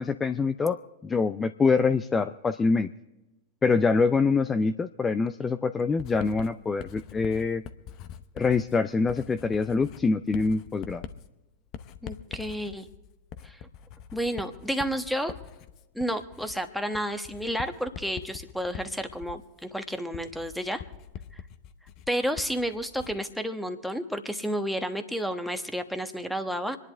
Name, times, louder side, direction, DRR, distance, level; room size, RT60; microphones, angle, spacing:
voice 1, 0.0-2.9 3.6-7.6 8.4-11.0, left 4 dB, 20° left, 13 dB, 0.4 m, -25 dB
Writing, 6.0-23.3, left 9 dB, 45° left, 0.8 m, -44 dB
voice 2, 12.0-12.9 13.4-13.6 14.1-15.3 15.9-20.8 22.1-26.8, equal, ahead, 8 dB, 1.2 m, -31 dB
26.5 x 11.0 x 3.4 m, 1.1 s
hypercardioid pair, 95°, 0 cm